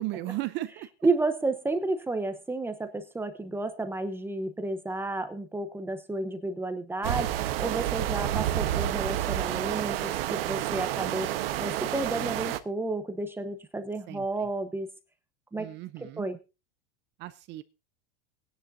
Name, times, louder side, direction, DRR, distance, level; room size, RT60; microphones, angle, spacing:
voice 1, 0.0-0.9 14.1-14.3 15.6-16.3 17.2-17.6, right 16 dB, 35° right, 14 dB, 0.6 m, -35 dB
voice 2, 1.0-7.3 7.6-11.3 11.6-14.9 15.5-15.7 16.0-16.4, right 2 dB, 5° right, 9 dB, 0.8 m, -31 dB
sound 1, 7.0-12.6, right 13 dB, 75° right, 1.1 m, -29 dB
19.0 x 10.0 x 2.6 m, 0.29 s
supercardioid pair, 145°, 30 cm